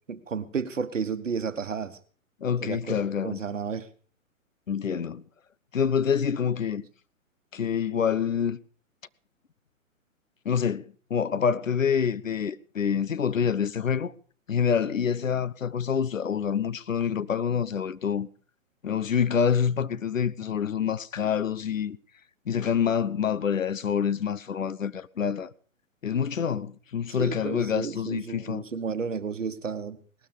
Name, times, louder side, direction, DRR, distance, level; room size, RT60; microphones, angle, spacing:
voice 1, 0.1-2.0 2.6-3.0 3.2-3.9 27.2-30.0, right 6 dB, 60° right, 1.4 m, -32 dB
voice 2, 2.4-3.4 4.7-5.2 5.7-6.9 7.5-8.6 10.4-14.1 14.5-18.3 18.8-22.0 22.5-25.5 26.0-28.6, left 7 dB, 65° left, 0.8 m, -27 dB
18.5 x 12.5 x 5.2 m
figure-of-eight pair, 125°, 41 cm